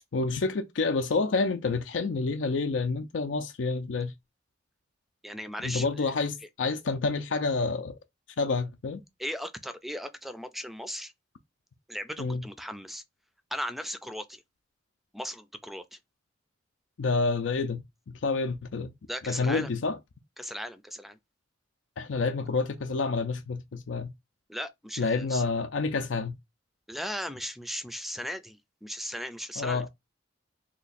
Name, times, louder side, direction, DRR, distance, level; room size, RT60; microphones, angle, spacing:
voice 1, 0.1-4.1 5.6-7.9 8.4-9.0 12.2-12.4 17.0-17.8 18.1-18.9 19.3-20.0 22.0-24.1 25.0-26.3 29.6-29.9, left 4 dB, 85° left, 0.5 m, -28 dB
voice 2, 5.2-6.1 9.2-11.1 11.9-13.0 13.5-14.4 15.1-16.0 19.1-19.7 20.4-21.2 24.5-25.4 26.9-29.9, equal, ahead, 0.4 m, -37 dB
2.9 x 2.3 x 4.1 m
head